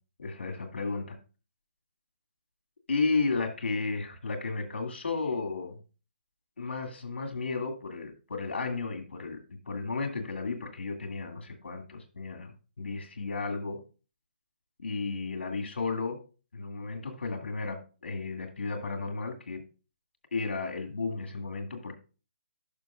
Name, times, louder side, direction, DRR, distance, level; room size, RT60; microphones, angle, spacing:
voice 1, 0.2-1.2 2.9-5.8 6.6-13.8 14.8-16.2 16.5-19.6 20.3-22.0, left 4 dB, 90° left, 4 dB, 2.2 m, -33 dB
11.5 x 6.2 x 2.4 m, 0.35 s
hypercardioid pair, 165°, 6 cm